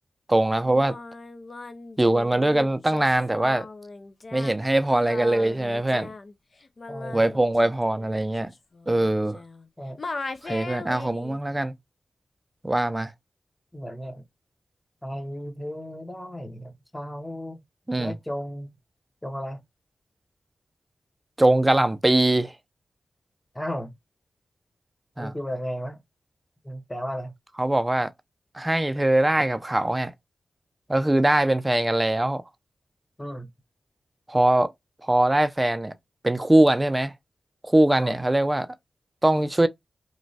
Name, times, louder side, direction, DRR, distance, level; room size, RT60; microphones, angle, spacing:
voice 1, 0.3-0.9 2.0-3.7 4.3-6.1 7.1-8.5 8.9-9.4 10.4-11.7 12.6-13.1 17.9-18.1 21.4-22.5 25.2-25.3 27.6-28.1 28.5-30.1 30.9-32.4 34.3-34.7 35.0-35.9 36.2-37.1 37.6-38.7 39.2-39.7, right 1 dB, 20° right, 0.4 m, -22 dB
Singing, 0.6-9.7 10.0-11.4, left 3 dB, 55° left, 0.4 m, -39 dB
voice 2, 6.9-7.3 9.8-10.0 13.7-14.2 15.0-17.6 18.0-18.7 19.2-19.6 23.5-23.9 25.2-26.0 26.6-27.3 33.2-33.5 38.0-38.2, equal, 15° left, 0.7 m, -34 dB
3.0 x 2.2 x 2.7 m
cardioid pair, 40°, 0 cm